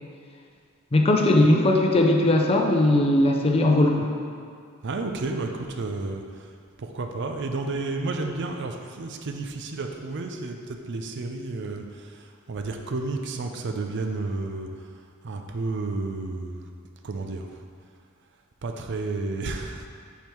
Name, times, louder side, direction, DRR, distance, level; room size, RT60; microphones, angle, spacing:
voice 1, 0.9-4.1, left 1 dB, 30° left, 1 dB, 0.6 m, -19 dB
voice 2, 4.8-6.5 6.8-14.7 15.2-16.7 17.0-17.5 18.6-19.9, right 3 dB, 60° right, 4 dB, 0.5 m, -31 dB
5.3 x 4.6 x 4.5 m, 2.2 s
head